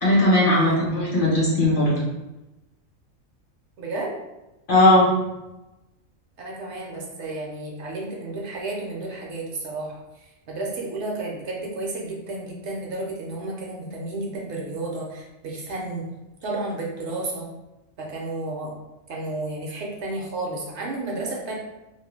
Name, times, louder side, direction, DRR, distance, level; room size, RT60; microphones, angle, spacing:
voice 1, 0.0-2.0 4.7-5.1, left 1 dB, 45° left, -6 dB, 0.8 m, -18 dB
voice 2, 3.8-4.2 6.4-16.1 16.4-17.5 18.0-18.7 19.1-21.5, right 2 dB, 65° right, -2 dB, 0.8 m, -32 dB
2.4 x 2.1 x 3.3 m, 1.0 s
omnidirectional pair, 1.4 m